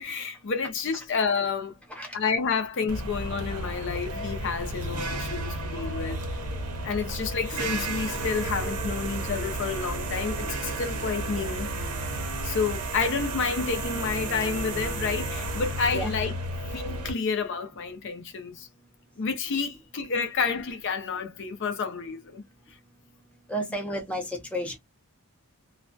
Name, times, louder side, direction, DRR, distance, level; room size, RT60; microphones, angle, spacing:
voice 1, 0.0-1.8 2.1-6.2 6.8-11.7 12.4-16.3 16.7-18.7 19.2-22.4, left 5 dB, 55° left, 0.5 m, -30 dB
sound 1, 2.9-17.1, right 2 dB, 85° right, 0.7 m, -32 dB
voice 2, 23.5-24.8, equal, 5° left, 0.5 m, -32 dB
2.3 x 2.2 x 2.5 m
head